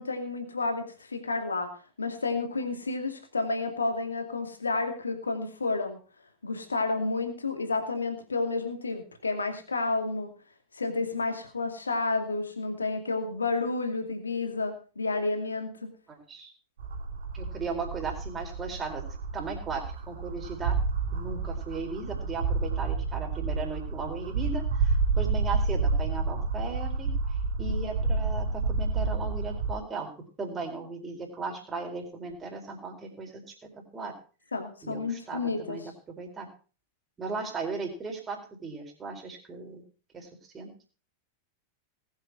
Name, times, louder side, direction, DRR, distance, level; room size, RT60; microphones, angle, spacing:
voice 1, 0.0-1.7 2.0-6.0 6.4-10.3 10.8-15.7 34.5-35.8, left 3 dB, 75° left, 6 dB, 2.4 m, -30 dB
voice 2, 16.1-16.5 17.3-19.0 19.3-20.8 21.1-34.1 34.8-36.5 37.2-39.8 40.1-40.3 40.5-40.7, right 4 dB, 20° right, 0 dB, 4.3 m, -37 dB
sound 1, 16.8-29.7, right 4 dB, 65° right, 2.4 m, -29 dB
20.0 x 7.4 x 4.7 m, 0.37 s
figure-of-eight pair, 90°, 0 cm